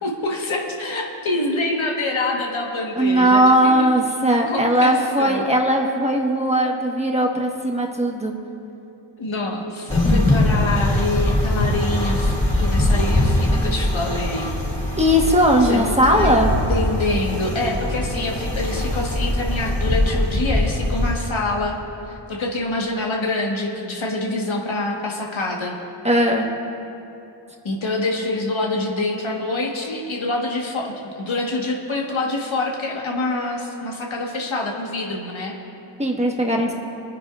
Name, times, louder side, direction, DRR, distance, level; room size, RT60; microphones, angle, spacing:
voice 1, 0.0-4.0 4.3-5.5 9.2-14.5 15.7-16.4 16.7-21.8 22.1-25.7 27.6-35.5, left 2 dB, 80° left, -1 dB, 1.5 m, -26 dB
voice 2, 3.0-8.3 15.0-16.5 26.0-26.5 36.0-36.7, equal, 15° right, 0 dB, 1.3 m, -18 dB
sound 1, 9.9-21.1, left 1 dB, 15° left, 2.4 m, -22 dB
28.5 x 9.5 x 2.5 m, 2.8 s
wide cardioid pair, 55°, 46 cm